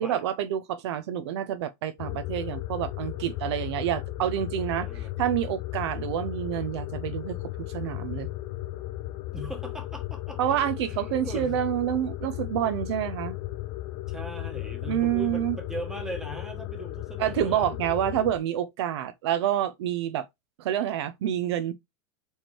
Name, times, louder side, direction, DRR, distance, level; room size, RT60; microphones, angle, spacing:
voice 1, 0.0-8.3 10.4-13.4 14.9-15.6 17.2-20.3 20.6-21.7, right 11 dB, 60° right, 0.8 m, -28 dB
sound 1, 2.0-18.4, left 15 dB, 30° left, 0.5 m, -35 dB
voice 2, 4.7-5.1 9.3-10.6 10.9-11.6 14.1-17.7, right 1 dB, 5° right, 1.2 m, -39 dB
4.9 x 4.5 x 4.6 m
supercardioid pair, 175°, 16 cm